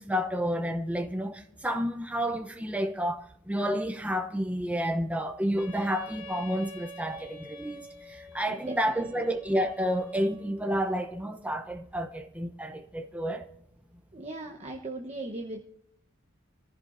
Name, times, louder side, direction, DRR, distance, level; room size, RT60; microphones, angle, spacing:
voice 1, 0.0-7.8 8.1-13.5, equal, 5° right, 0.7 m, -30 dB
Wind instrument woodwind instrument, 5.6-10.6, right 1 dB, 50° left, 4.1 m, -46 dB
voice 2, 8.5-9.1 14.1-15.6, right 2 dB, 30° right, 1.0 m, -38 dB
24.5 x 14.5 x 2.6 m
head